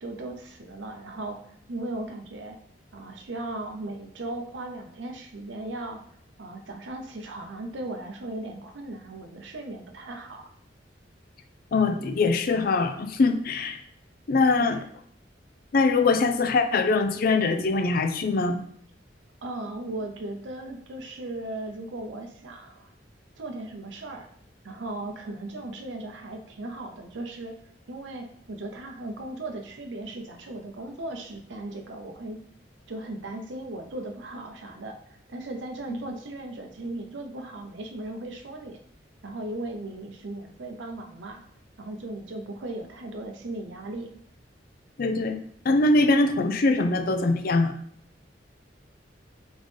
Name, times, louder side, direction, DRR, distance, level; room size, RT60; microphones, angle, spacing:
voice 1, 0.0-2.6 2.9-6.0 6.4-10.5 14.5-14.8 19.4-22.9 23.4-24.3 24.6-27.5 27.9-32.4 32.9-38.8 39.2-41.4 41.8-44.1, right 2 dB, 85° right, 3 dB, 0.7 m, -37 dB
voice 2, 11.7-13.8 14.3-14.8 15.7-18.6 35.9-36.0 45.0-45.4 45.7-47.8, left 3 dB, 50° left, 7 dB, 0.4 m, -22 dB
3.9 x 3.6 x 3.3 m, 0.66 s
head